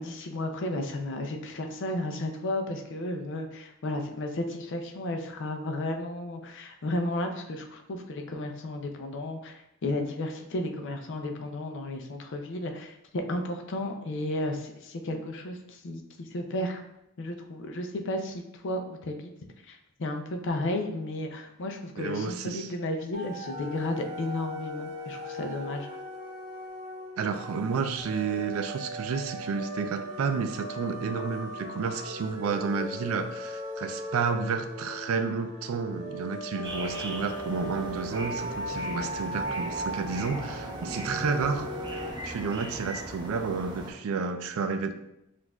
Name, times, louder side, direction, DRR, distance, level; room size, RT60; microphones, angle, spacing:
voice 1, 0.0-16.8 17.2-19.3 19.6-25.9, left 1 dB, 60° left, 4 dB, 0.5 m, -33 dB
voice 2, 22.0-22.7 27.2-41.7 42.2-44.9, right 5 dB, 75° right, 8 dB, 0.4 m, -31 dB
sound 1, 23.1-42.1, equal, 45° right, 0.9 m, -38 dB
sound 2, 36.6-43.9, right 1 dB, 20° right, 0.6 m, -39 dB
6.0 x 2.5 x 2.3 m, 0.84 s
head